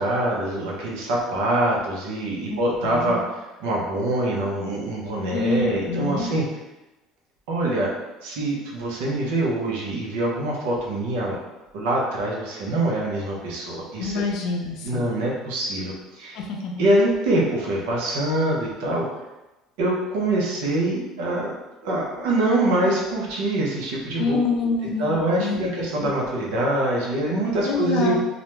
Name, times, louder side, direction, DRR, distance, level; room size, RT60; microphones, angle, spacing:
voice 1, 0.0-3.2 3.6-6.4 7.5-7.9 8.2-11.4 11.7-14.2 14.8-16.4 16.8-19.1 19.8-21.5 21.8-24.4 25.0-28.2, right 1 dB, 85° right, -3 dB, 0.7 m, -24 dB
voice 2, 2.5-3.2 5.3-6.3 14.0-15.1 16.3-16.8 24.2-25.6 26.0-26.1 27.6-28.2, left 4 dB, 70° left, 1 dB, 0.5 m, -26 dB
2.4 x 2.1 x 3.0 m, 1.0 s
supercardioid pair, 115°, 0 cm